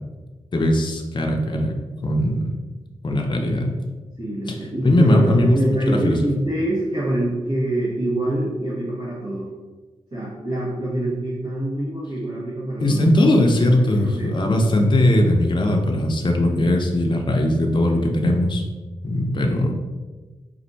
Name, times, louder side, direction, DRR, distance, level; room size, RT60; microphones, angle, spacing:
voice 1, 0.5-1.8 2.0-2.5 3.0-3.7 4.8-5.6 5.9-6.2 12.8-18.7 19.0-19.7, left 1 dB, 40° left, 1 dB, 0.6 m, -19 dB
voice 2, 4.2-9.5 10.1-13.0 13.7-14.4 19.3-19.5, right 1 dB, 50° right, -10 dB, 1.5 m, -25 dB
4.3 x 2.6 x 4.0 m, 1.3 s
cardioid pair, 65°, 13 cm